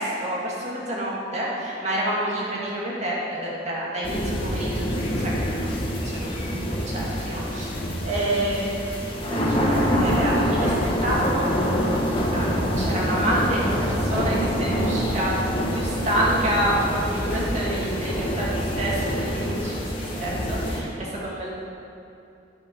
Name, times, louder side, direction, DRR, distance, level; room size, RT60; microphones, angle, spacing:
voice 1, 0.0-8.8 9.3-11.5 12.3-15.3 15.7-19.9 20.2-21.5, right 1 dB, 40° right, -5 dB, 2.1 m, -28 dB
sound 1, 4.0-20.8, equal, 30° left, 1.4 m, -25 dB
10.0 x 6.6 x 5.3 m, 2.7 s
head